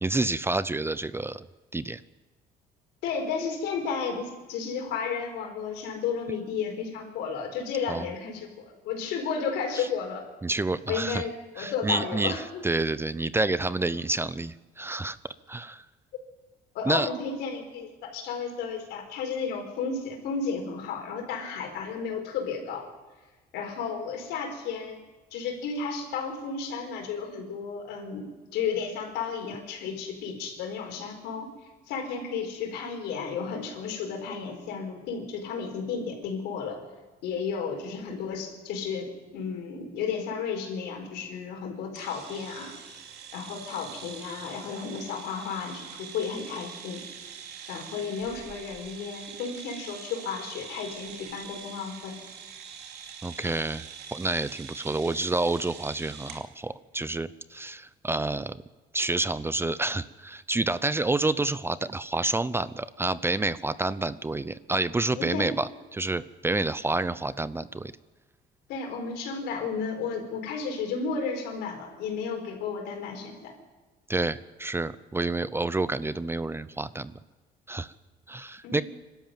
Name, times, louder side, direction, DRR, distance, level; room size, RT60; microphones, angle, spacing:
voice 1, 0.0-1.4 1.7-2.0 7.9-8.1 10.4-11.2 11.6-15.2 15.5-15.8 16.9-17.1 53.2-53.9 54.1-58.6 58.9-67.9 74.1-77.1 77.7-77.9 78.3-78.8, right 2 dB, 15° right, 16 dB, 0.6 m, -29 dB
voice 2, 3.0-10.2 10.9-12.6 16.7-22.8 23.5-25.0 25.3-31.5 31.9-36.8 37.2-39.1 39.3-42.8 43.3-47.0 47.7-52.2 65.2-65.5 68.7-73.5 78.6-78.8, left 5 dB, 85° left, 3 dB, 4.7 m, -33 dB
sound 1, 41.9-56.4, right 7 dB, 75° right, 2.8 m, -44 dB
24.0 x 13.0 x 9.0 m, 1.2 s
cardioid pair, 110°, 17 cm